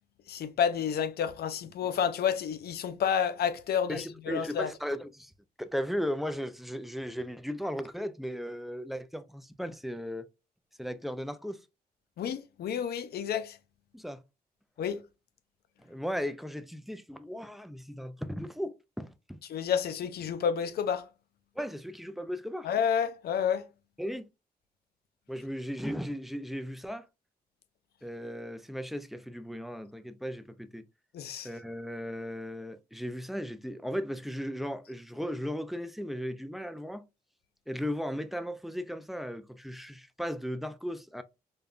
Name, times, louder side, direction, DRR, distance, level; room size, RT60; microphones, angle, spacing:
voice 1, 0.3-4.7 12.2-13.6 14.8-15.0 19.5-21.1 22.6-23.7 31.1-31.5, left 8 dB, 80° left, 0.5 m, -30 dB
voice 2, 3.9-5.3 5.6-10.3 10.8-11.7 13.9-14.2 15.8-19.4 21.6-22.7 24.0-24.3 25.3-27.1 28.0-30.8 31.4-37.1 37.7-41.2, equal, ahead, 0.4 m, -36 dB
5.2 x 2.2 x 2.4 m
cardioid pair, 95°, 16 cm